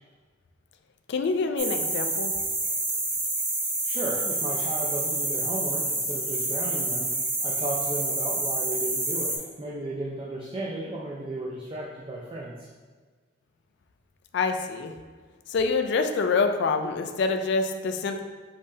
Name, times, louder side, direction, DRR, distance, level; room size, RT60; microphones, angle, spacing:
voice 1, 1.1-2.4 14.3-14.9 15.5-18.2, left 4 dB, 60° left, 6 dB, 0.4 m, -26 dB
sound 1, 1.6-9.4, right 2 dB, 40° right, 1.2 m, -28 dB
voice 2, 3.8-7.1 7.4-12.7, right 1 dB, 25° right, -4 dB, 0.4 m, -34 dB
5.3 x 3.3 x 2.7 m, 1.5 s
head